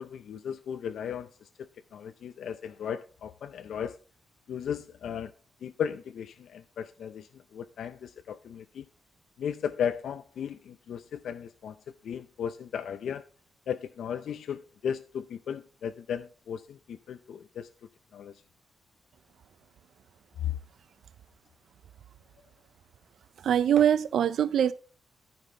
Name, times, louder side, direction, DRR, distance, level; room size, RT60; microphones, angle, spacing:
voice 1, 0.0-1.5 1.9-4.0 4.5-5.3 5.6-8.8 9.4-11.8 12.0-13.3 13.7-17.7 18.1-18.3 20.4-20.6, left 8 dB, 75° left, 0.5 m, -35 dB
voice 2, 23.4-24.7, right 9 dB, 75° right, 0.5 m, -23 dB
13.0 x 6.0 x 3.7 m
wide cardioid pair, 145°, 0 cm